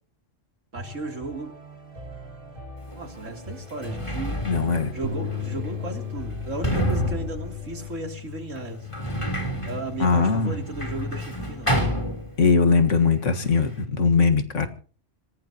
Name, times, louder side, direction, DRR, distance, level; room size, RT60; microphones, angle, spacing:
sound 1, 0.7-7.9, right 1 dB, 45° right, 2.4 m, -42 dB
voice 1, 0.7-1.6 2.9-4.6 4.9-8.9 9.7-11.8, right 2 dB, 85° right, 3 dB, 3.5 m, -35 dB
Sliding door, 2.9-3.0 3.6-12.8 13.0-13.9, equal, 25° left, 3.5 m, -30 dB
voice 2, 4.5-4.9 10.0-10.6 12.4-14.7, left 4 dB, 75° left, 7 dB, 2.0 m, -20 dB
sound 2, 5.0-11.3, left 8 dB, 60° right, 4.2 m, -37 dB
26.0 x 17.0 x 2.9 m, 0.42 s
omnidirectional pair, 1.3 m